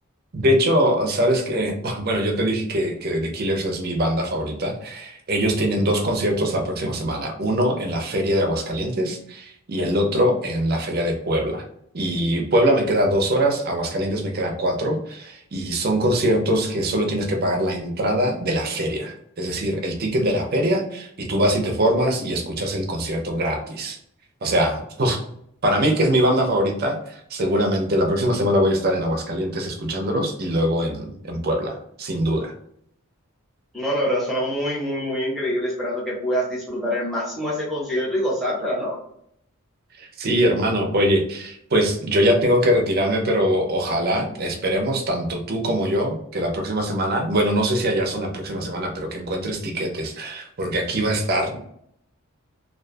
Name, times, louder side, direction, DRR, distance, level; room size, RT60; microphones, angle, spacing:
voice 1, 0.3-11.6 11.9-24.0 24.4-25.2 25.6-32.5 40.0-51.6, equal, 45° right, 3 dB, 0.6 m, -22 dB
voice 2, 33.7-39.0, equal, ahead, -5 dB, 0.8 m, -25 dB
2.4 x 2.3 x 2.5 m, 0.70 s
head